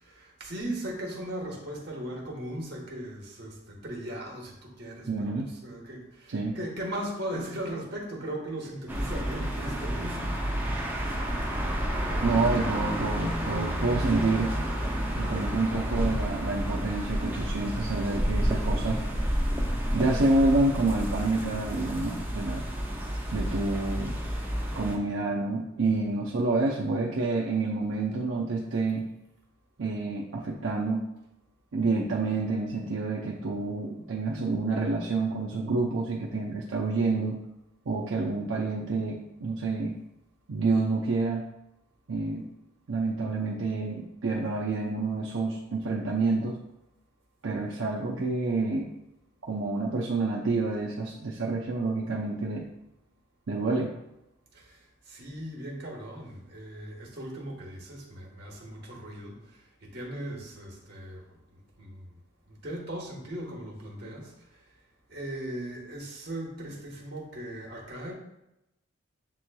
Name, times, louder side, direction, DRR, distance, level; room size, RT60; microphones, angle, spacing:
voice 1, 0.0-10.5 54.5-54.8 55.1-59.4 59.8-61.4 61.8-62.2 62.5-64.3 65.1-68.1, right 1 dB, 55° right, -2 dB, 1.1 m, -38 dB
voice 2, 5.1-5.5 6.3-6.6 12.2-14.5 15.1-19.0 19.9-22.6 23.3-24.2 24.8-29.1 29.8-31.0 31.7-37.4 37.9-40.0 40.5-41.4 42.1-42.5 42.9-46.6 47.4-48.9 49.4-52.7 53.5-53.9, right 3 dB, 75° right, -3 dB, 0.5 m, -28 dB
sound 1, 8.9-25.0, equal, 10° right, 0.5 m, -30 dB
7.4 x 3.0 x 2.2 m, 0.89 s
head